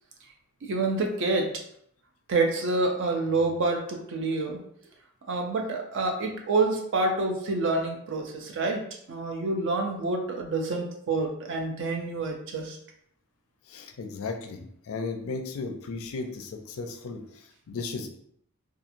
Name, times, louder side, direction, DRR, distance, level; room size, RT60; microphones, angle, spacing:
voice 1, 0.6-1.6 2.3-4.6 5.3-12.8, right 3 dB, 55° right, 3 dB, 0.4 m, -27 dB
voice 2, 13.7-14.6 14.9-17.2 17.7-18.1, left 4 dB, 65° left, 4 dB, 0.4 m, -35 dB
2.8 x 2.4 x 2.5 m, 0.68 s
head